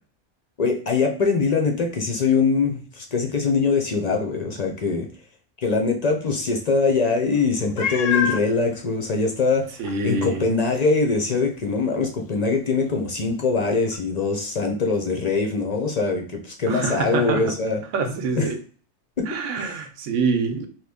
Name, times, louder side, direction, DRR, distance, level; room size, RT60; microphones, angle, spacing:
voice 1, 0.6-5.1 5.6-9.7 10.0-17.8 18.4-18.5 19.2-19.9, left 4 dB, 50° left, 2 dB, 0.5 m, -23 dB
Meow, 7.8-8.5 9.2-9.3 9.8-9.9 13.9-14.0, left 6 dB, 90° left, 0.9 m, -25 dB
voice 2, 9.8-10.5 16.7-17.5 17.9-18.6 19.3-20.7, right 4 dB, 85° right, 6 dB, 1.0 m, -25 dB
3.0 x 2.4 x 3.4 m, 0.42 s
omnidirectional pair, 1.3 m